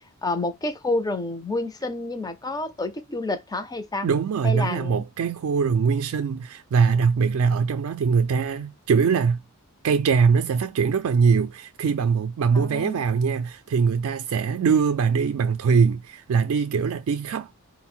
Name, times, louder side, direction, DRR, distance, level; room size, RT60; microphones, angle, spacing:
voice 1, 0.2-4.1 4.4-5.0 12.5-13.0, left 2 dB, 15° left, 0.5 m, -29 dB
voice 2, 4.0-9.4 9.8-17.5, right 5 dB, 65° right, 0.3 m, -22 dB
4.4 x 2.1 x 4.2 m
head